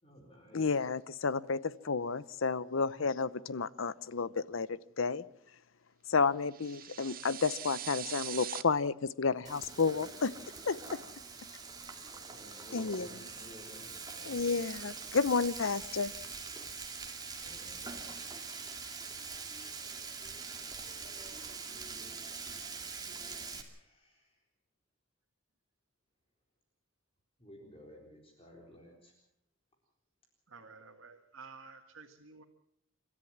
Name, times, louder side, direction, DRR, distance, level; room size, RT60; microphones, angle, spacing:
voice 1, 0.0-0.9 12.3-14.6 17.3-18.2 22.4-22.5 23.6-24.4 27.4-29.1, left 1 dB, 30° left, 4.0 m, -54 dB
voice 2, 0.5-5.2 6.1-10.3 10.6-11.0 12.7-13.1 14.2-16.1, left 4 dB, 70° left, 0.7 m, -31 dB
sound 1, 6.5-8.6, right 12 dB, 45° right, 0.9 m, -42 dB
Frying (food), 9.4-23.6, right 4 dB, 20° right, 2.7 m, -44 dB
voice 3, 30.5-32.4, right 4 dB, 90° right, 1.8 m, -52 dB
29.5 x 13.5 x 7.4 m
head